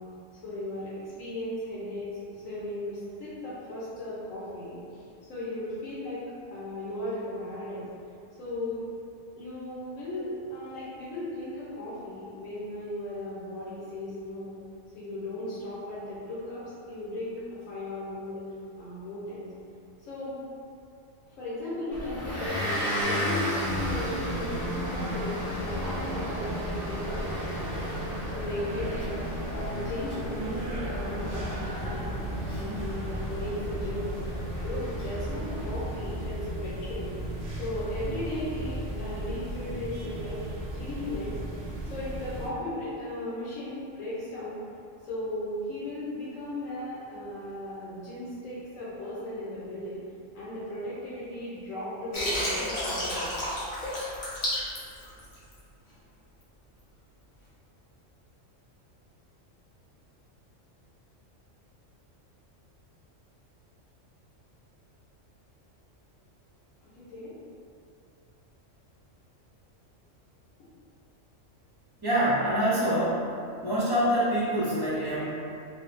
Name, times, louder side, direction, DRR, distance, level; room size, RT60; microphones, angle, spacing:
voice 1, 0.0-5.0 5.3-6.2 6.5-7.9 8.4-8.8 9.3-14.5 14.9-18.4 18.8-19.5 20.0-20.4 21.4-32.1 32.5-34.3 34.6-37.1 37.6-40.5 40.7-41.3 41.8-44.6 45.0-50.0 50.3-53.5 66.8-67.3, left 1 dB, 85° left, -10 dB, 1.1 m, -37 dB
Motor vehicle (road) / Engine, 21.9-36.1, equal, 20° left, 1.0 m, -34 dB
sound 1, 23.6-42.5, right 1 dB, 60° right, 0.8 m, -35 dB
Water, 52.1-55.6, left 1 dB, 70° left, 1.1 m, -31 dB
voice 2, 72.0-73.3 73.6-75.3, equal, 25° right, -11 dB, 0.6 m, -25 dB
3.8 x 2.1 x 2.5 m, 2.5 s
omnidirectional pair, 1.3 m